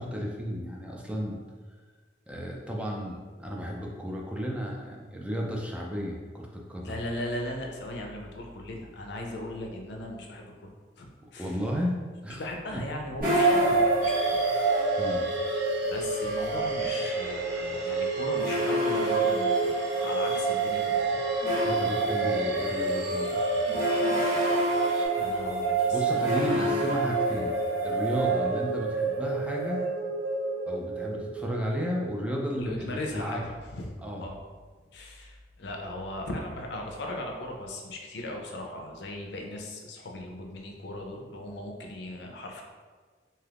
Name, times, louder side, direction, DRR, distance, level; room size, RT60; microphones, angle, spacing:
voice 1, 0.0-1.4 2.3-7.0 11.2-12.4 15.0-15.3 21.6-23.8 25.9-27.5 27.8-29.8 30.7-33.5 34.0-34.3, equal, 5° right, -1 dB, 0.3 m, -33 dB
voice 2, 6.8-10.7 11.0-11.6 12.4-14.4 15.9-21.1 25.1-26.0 26.4-27.0 28.4-28.5 32.5-33.4 33.7-33.9 34.2-34.4 34.9-42.6, left 1 dB, 65° left, 1 dB, 0.5 m, -38 dB
sound 1, 13.2-32.3, right 2 dB, 55° right, 1.4 m, -27 dB
sound 2, 14.0-25.1, right 2 dB, 70° right, 0.5 m, -41 dB
2.7 x 2.4 x 3.3 m, 1.5 s
head